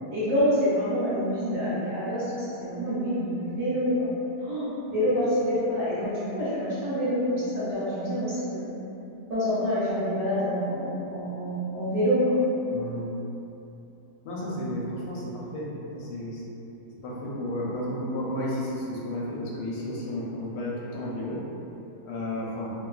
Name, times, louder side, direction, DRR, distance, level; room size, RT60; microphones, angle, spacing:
voice 1, 0.1-4.1 4.4-8.7 9.3-12.4, equal, 60° right, -12 dB, 0.8 m, -27 dB
voice 2, 12.7-13.0 14.2-16.4 17.0-21.4 22.0-22.7, left 1 dB, 85° left, -5 dB, 1.2 m, -32 dB
2.9 x 2.2 x 2.3 m, 2.9 s
omnidirectional pair, 1.8 m